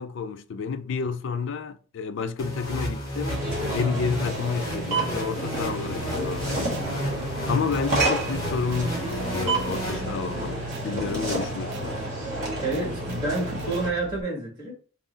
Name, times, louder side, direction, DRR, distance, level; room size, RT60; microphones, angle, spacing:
voice 1, 0.0-3.4 3.7-12.0, left 5 dB, 65° left, 0.4 m, -30 dB
sound 1, 2.4-10.6, equal, 20° left, 1.2 m, -33 dB
sound 2, 3.2-13.9, right 2 dB, 40° right, 1.2 m, -30 dB
sound 3, 6.2-14.2, right 4 dB, 60° right, 0.4 m, -43 dB
voice 2, 12.6-14.7, right 2 dB, 20° right, 1.5 m, -28 dB
3.7 x 2.1 x 3.9 m
head